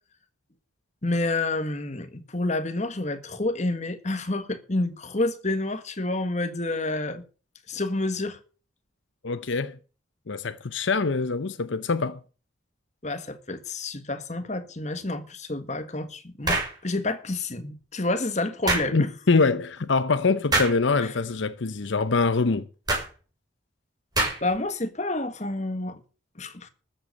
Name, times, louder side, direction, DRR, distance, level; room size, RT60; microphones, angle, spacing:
voice 1, 1.0-7.2 7.7-8.4 13.0-19.1 21.0-21.1 24.4-26.0 26.4-26.7, left 2 dB, 35° left, 1.6 m, -29 dB
voice 2, 9.2-9.8 10.3-12.2 18.9-22.7, left 4 dB, 70° left, 0.7 m, -24 dB
sound 1, 16.4-16.8 18.7-18.9 20.5-20.8 22.9-23.1 24.2-24.6, right 2 dB, 20° right, 5.7 m, -24 dB
13.5 x 8.0 x 7.9 m
head